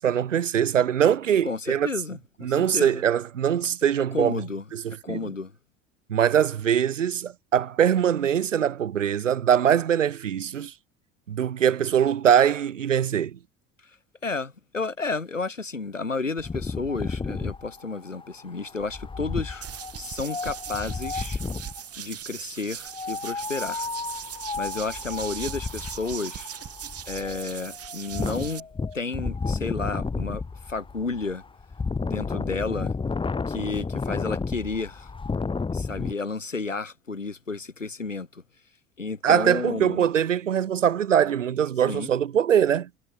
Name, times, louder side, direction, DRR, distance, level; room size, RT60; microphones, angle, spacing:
voice 1, 0.0-1.9 2.4-4.4 4.7-5.3 6.1-10.7 11.3-13.4 39.2-42.9, right 9 dB, 90° right, 0.6 m, -22 dB
voice 2, 1.4-3.0 4.1-4.6 5.0-5.5 14.2-19.6 20.0-21.4 22.0-23.9 24.5-26.5 27.1-28.7 28.9-31.4 32.0-32.9 33.5-35.1 35.7-38.4 39.0-40.1 41.9-42.1, left 3 dB, 90° left, 3.6 m, -32 dB
Wind, 16.4-21.8 22.9-36.1, left 4 dB, 15° left, 1.0 m, -32 dB
sound 1, 19.6-28.6, right 9 dB, 40° right, 5.8 m, -39 dB
figure-of-eight pair, 60°, 37 cm